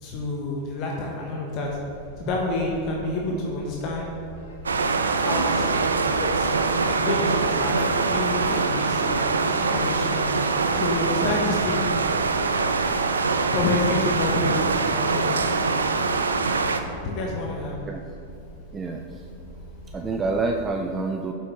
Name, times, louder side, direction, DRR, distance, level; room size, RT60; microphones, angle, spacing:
voice 1, 0.0-1.8 2.2-4.1 5.1-6.5 6.9-10.2 10.7-11.9 13.5-15.4 17.0-17.8, left 2 dB, 45° left, -1 dB, 0.9 m, -28 dB
sound 1, 1.6-20.7, equal, 70° left, 1.2 m, -42 dB
sound 2, 4.7-16.8, right 4 dB, 85° right, 0.4 m, -23 dB
voice 2, 18.7-19.2 19.9-21.3, right 3 dB, 20° right, 3 dB, 0.4 m, -28 dB
7.5 x 5.5 x 3.0 m, 2.8 s
hypercardioid pair, 100°, 0 cm